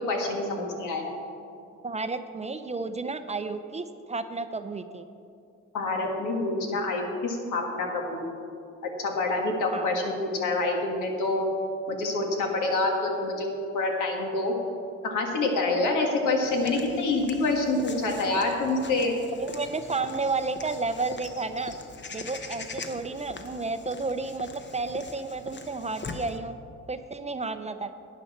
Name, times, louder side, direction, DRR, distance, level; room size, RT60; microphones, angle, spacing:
voice 1, 0.1-1.1 5.7-8.4 9.0-11.5 11.9-14.5 15.0-19.1, left 2 dB, 85° left, 1 dB, 1.8 m, -27 dB
voice 2, 1.8-5.0 9.7-9.9 19.4-21.8 22.1-26.6 26.9-27.9, right 3 dB, 20° right, 10 dB, 0.5 m, -32 dB
Walk footsteps / Bird vocalization bird call bird song, 16.4-26.4, left 4 dB, 35° left, 0.9 m, -42 dB
11.5 x 9.2 x 4.2 m, 2.5 s
cardioid pair, 90°, 30 cm